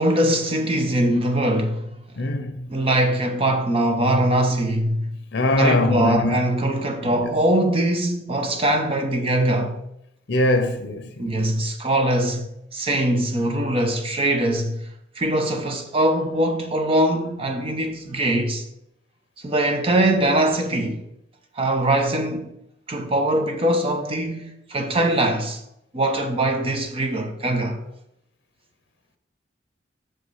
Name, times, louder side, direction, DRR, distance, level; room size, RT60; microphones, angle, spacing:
voice 1, 0.0-2.0 2.7-5.1 5.6-9.8 11.2-14.9 15.2-18.6 19.4-21.0 21.6-22.5 22.9-25.6 25.9-27.8, right 1 dB, 30° right, 0.8 m, -22 dB
voice 2, 2.2-2.7 5.3-6.3 7.0-7.4 10.3-11.3, left 2 dB, 60° left, 0.8 m, -22 dB
6.3 x 5.2 x 4.8 m
head